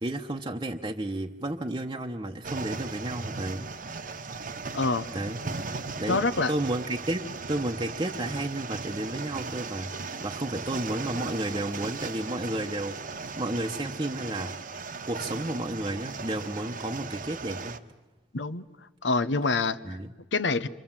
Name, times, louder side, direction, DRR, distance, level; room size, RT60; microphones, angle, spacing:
voice 1, 0.0-3.7 5.1-5.4 6.0-13.0 13.4-14.6 15.1-17.8 19.8-20.1, right 1 dB, 25° right, 1 dB, 1.0 m, -32 dB
sound 1, 2.4-17.8, right 4 dB, 50° right, 1.1 m, -37 dB
voice 2, 4.7-5.1 6.1-6.5 18.3-18.6 19.0-19.8 20.3-20.7, left 3 dB, 85° left, 14 dB, 0.9 m, -25 dB
28.0 x 25.5 x 7.4 m, 1.1 s
head